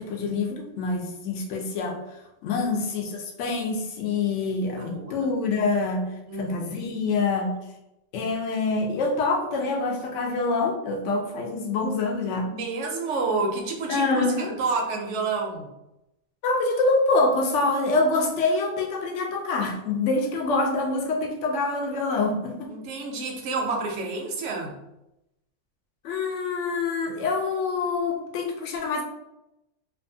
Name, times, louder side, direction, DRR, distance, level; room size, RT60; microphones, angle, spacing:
voice 1, 0.0-2.0 2.4-6.1 6.4-7.6 8.1-12.5 13.9-14.6 16.4-22.7 26.0-29.0, left 3 dB, 85° left, 2 dB, 0.9 m, -26 dB
voice 2, 4.8-5.3 6.3-7.0 12.5-15.7 22.7-24.8, right 3 dB, 85° right, 2 dB, 0.9 m, -29 dB
2.7 x 2.3 x 2.6 m, 0.88 s
omnidirectional pair, 1.2 m